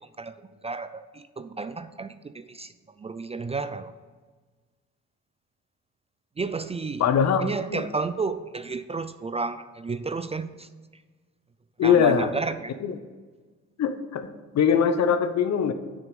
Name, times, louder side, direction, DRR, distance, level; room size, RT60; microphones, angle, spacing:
voice 1, 0.0-3.9 6.4-7.0 7.4-11.0 11.8-12.7, right 4 dB, 20° right, 12 dB, 0.4 m, -32 dB
voice 2, 7.0-7.8 11.8-12.3 12.8-13.0 13.8-14.3 14.5-15.7, left 7 dB, 60° left, 10 dB, 0.9 m, -22 dB
7.2 x 6.2 x 6.9 m, 1.4 s
cardioid pair, 90°, 30 cm